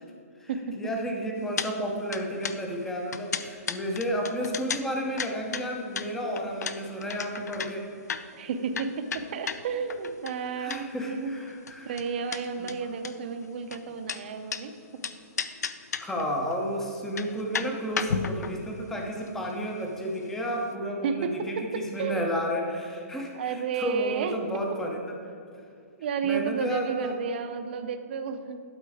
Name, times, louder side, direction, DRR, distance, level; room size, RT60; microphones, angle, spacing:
voice 1, 0.8-7.9 10.6-12.0 12.6-12.7 16.0-25.0 25.2-25.3 26.2-27.2, equal, 5° left, 1 dB, 0.6 m, -32 dB
sound 1, 1.6-1.7 2.0-11.1 11.3-14.6 15.0-16.2 16.5-16.6 17.0-20.4 20.7-20.8, left 6 dB, 85° left, 0.5 m, -34 dB
voice 2, 8.4-11.3 11.9-14.7 21.0-22.2 23.3-24.6 26.0-28.6, right 6 dB, 40° right, 7 dB, 0.6 m, -32 dB
11.5 x 4.4 x 4.9 m, 2.4 s
hypercardioid pair, 170°, 9 cm